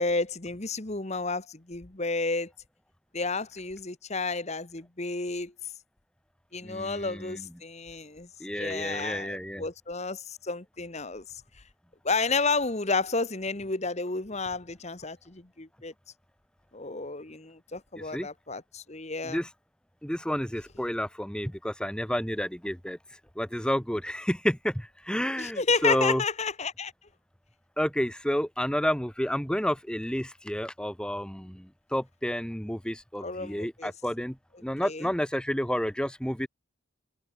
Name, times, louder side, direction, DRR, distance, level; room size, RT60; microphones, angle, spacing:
voice 1, 0.0-2.5 3.1-5.5 6.5-11.2 12.0-15.9 16.7-19.4 25.4-26.9 33.2-33.9 34.8-35.1, left 3 dB, 30° left, 1.3 m, -31 dB
voice 2, 6.6-7.5 8.4-9.6 18.1-18.3 19.2-19.5 20.0-23.0 23.4-26.2 27.8-34.4 34.6-36.5, equal, 5° left, 1.6 m, -30 dB
head